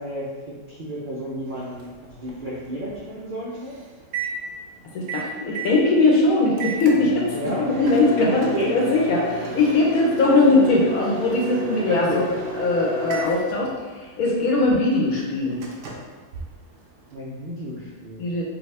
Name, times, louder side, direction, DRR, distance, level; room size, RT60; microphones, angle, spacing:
voice 1, 0.0-3.7 7.3-8.8 11.9-12.2 17.1-18.3, equal, 60° right, -6 dB, 0.5 m, -32 dB
Microwave oven, 1.5-17.1, right 3 dB, 85° right, 1.2 m, -34 dB
voice 2, 4.9-7.3 7.6-12.2 12.6-13.7 14.2-15.6 18.2-18.4, left 2 dB, 65° left, -3 dB, 1.2 m, -20 dB
4.7 x 2.7 x 3.2 m, 1.4 s
omnidirectional pair, 1.8 m